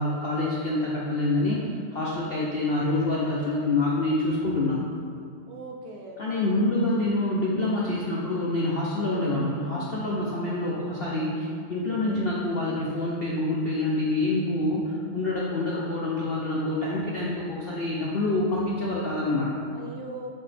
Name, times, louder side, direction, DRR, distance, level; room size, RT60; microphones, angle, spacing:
voice 1, 0.0-1.6 1.9-4.8 6.2-19.6, left 2 dB, 60° left, -5 dB, 0.6 m, -26 dB
voice 2, 5.5-6.6 10.6-11.3 12.0-12.4 19.7-20.3, right 2 dB, 70° right, 1 dB, 1.1 m, -41 dB
7.4 x 4.1 x 3.3 m, 2.2 s
omnidirectional pair, 1.8 m